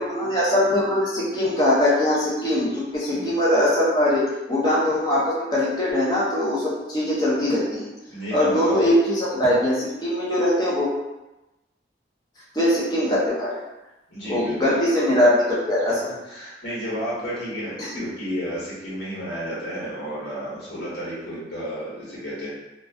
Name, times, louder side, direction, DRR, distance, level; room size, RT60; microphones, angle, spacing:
voice 1, 0.0-4.2 4.5-7.9 8.3-10.9 12.5-13.5 14.3-16.1 17.8-17.9, left 1 dB, 20° left, -7 dB, 0.6 m, -21 dB
voice 2, 8.1-8.9 14.1-14.8 16.2-22.5, equal, 75° left, -9 dB, 1.1 m, -32 dB
2.3 x 2.3 x 2.3 m, 1.0 s
head